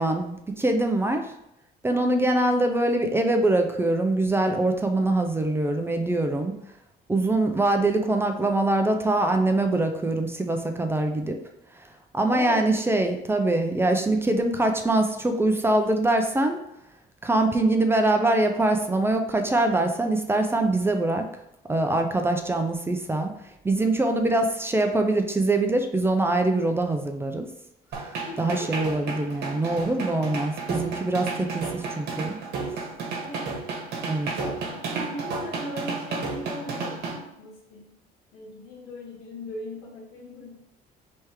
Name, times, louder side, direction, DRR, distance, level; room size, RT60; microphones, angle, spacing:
voice 1, 0.0-1.3 1.8-6.6 7.1-11.4 12.1-16.6 17.2-21.3 21.7-23.3 23.6-27.5 28.0-28.1 28.4-32.4 32.7-32.8 34.1-34.3, right 2 dB, 15° right, 5 dB, 0.4 m, -23 dB
voice 2, 12.3-12.7 28.3-28.7 33.2-33.6 34.3-37.0 37.4-37.9 38.3-40.5, left 1 dB, 90° left, -2 dB, 1.6 m, -38 dB
sound 1, 27.9-37.2, right 4 dB, 70° right, 1.1 m, -32 dB
3.4 x 3.1 x 4.7 m, 0.84 s
cardioid pair, 110°, 17 cm